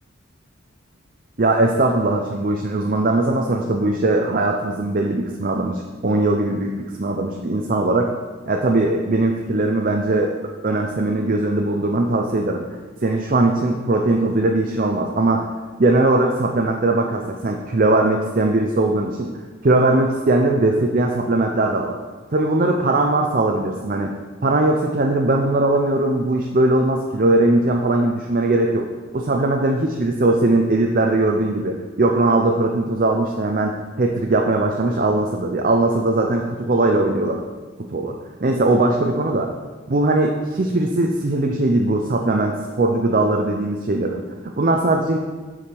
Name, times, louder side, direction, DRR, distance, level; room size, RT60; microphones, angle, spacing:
voice 1, 1.4-8.1 8.5-10.3 10.6-12.7 13.0-15.5 15.8-19.3 19.6-22.0 22.3-24.2 24.4-28.9 29.1-33.7 34.0-37.4 37.9-38.1 38.4-39.5 39.9-44.2 44.6-45.2, right 2 dB, 45° right, 2 dB, 0.6 m, -20 dB
8.5 x 4.9 x 5.9 m, 1.3 s
head